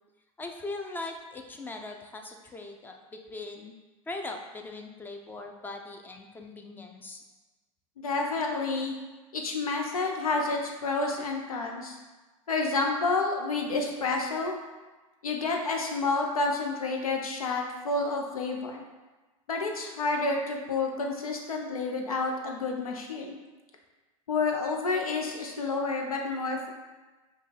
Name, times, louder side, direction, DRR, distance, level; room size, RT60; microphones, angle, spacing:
voice 1, 0.4-3.7 4.1-7.2, left 2 dB, 10° left, 3 dB, 0.4 m, -40 dB
voice 2, 8.0-8.9 9.3-12.0 12.5-14.5 15.2-18.8 19.5-23.3 24.3-26.7, left 3 dB, 90° left, 2 dB, 0.7 m, -29 dB
5.3 x 2.4 x 3.3 m, 1.2 s
hypercardioid pair, 105°, 18 cm